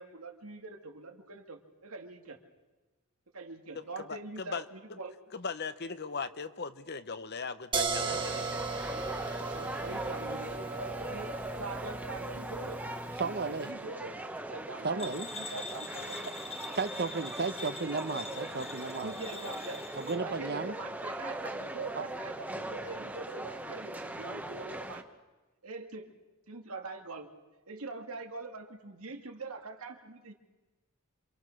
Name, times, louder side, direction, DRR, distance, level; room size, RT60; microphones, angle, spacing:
voice 1, 0.0-2.4 3.3-5.1 9.5-12.8 13.4-14.2 14.5-15.0 15.4-16.2 18.8-19.8 20.1-25.1 25.6-26.1 26.5-27.3 27.7-30.3, right 3 dB, 85° right, 4 dB, 2.2 m, -43 dB
voice 2, 3.7-4.6 4.9-5.0 5.3-8.4, left 5 dB, 50° left, 12 dB, 1.0 m, -39 dB
sound 1, 7.7-13.5, right 4 dB, 25° right, 1.6 m, -36 dB
sound 2, 8.0-25.0, right 1 dB, 10° right, 1.2 m, -40 dB
voice 3, 13.2-13.7 14.8-15.3 16.8-19.1 20.0-20.7 21.9-22.0, right 4 dB, 50° right, 12 dB, 1.0 m, -34 dB
sound 3, 15.0-20.2, left 3 dB, 30° left, 1.5 m, -44 dB
27.0 x 25.5 x 6.5 m, 1.2 s
head